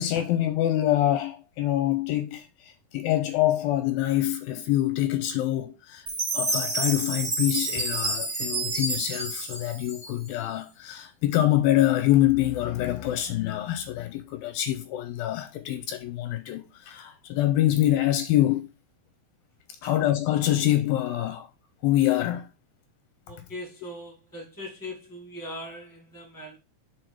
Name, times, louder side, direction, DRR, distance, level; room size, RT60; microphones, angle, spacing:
voice 1, 0.0-6.1 6.3-18.7 19.8-21.5 21.8-22.5, left 13 dB, 80° left, 2.3 m, -25 dB
Chime, 6.1-10.4, right 2 dB, 30° right, 1.5 m, -29 dB
voice 2, 23.3-26.6, left 1 dB, 5° left, 2.1 m, -40 dB
6.2 x 4.7 x 4.9 m
omnidirectional pair, 4.4 m